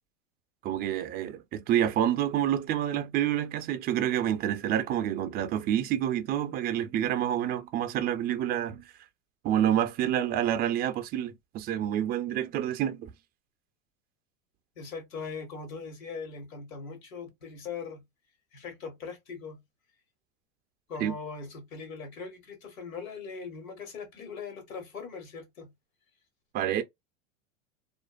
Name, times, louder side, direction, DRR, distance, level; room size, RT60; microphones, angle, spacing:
voice 1, 0.6-8.8 9.4-13.1 21.0-21.1 26.5-26.8, right 11 dB, 25° right, 0.4 m, -28 dB
voice 2, 14.7-18.0 18.5-19.6 20.9-25.7, left 5 dB, 90° left, 1.3 m, -40 dB
2.5 x 2.4 x 2.2 m
hypercardioid pair, 115°, 39 cm